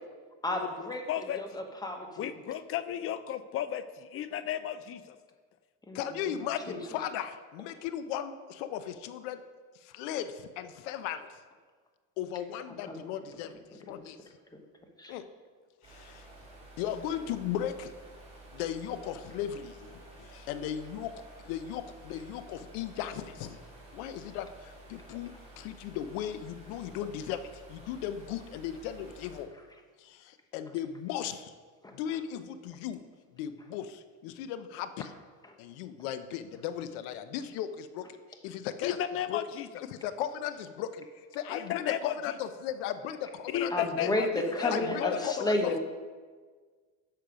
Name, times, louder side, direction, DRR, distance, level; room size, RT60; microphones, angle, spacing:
voice 1, 0.4-1.0 1.3-2.3 5.9-6.8 12.9-13.0 15.0-15.1 31.8-31.9 43.7-45.8, left 1 dB, 10° left, 4 dB, 1.1 m, -32 dB
voice 2, 1.1-1.6 2.2-5.2 20.2-20.5 38.8-39.7 41.5-42.3 43.5-44.3 44.6-45.8, left 11 dB, 35° left, 13 dB, 0.4 m, -34 dB
voice 3, 5.9-9.4 9.8-11.3 12.2-14.2 15.1-15.3 15.9-16.3 16.8-17.9 18.5-21.1 21.5-23.6 23.9-29.5 30.0-31.5 31.9-33.0 33.3-35.1 35.6-38.2 38.4-39.0 39.3-39.4 39.9-44.1 44.7-45.7, left 10 dB, 80° left, 11 dB, 0.8 m, -37 dB
sound 1, 15.8-29.4, right 2 dB, 15° right, 2.6 m, -52 dB
10.5 x 6.5 x 5.1 m, 1.5 s
cardioid pair, 140°, 40 cm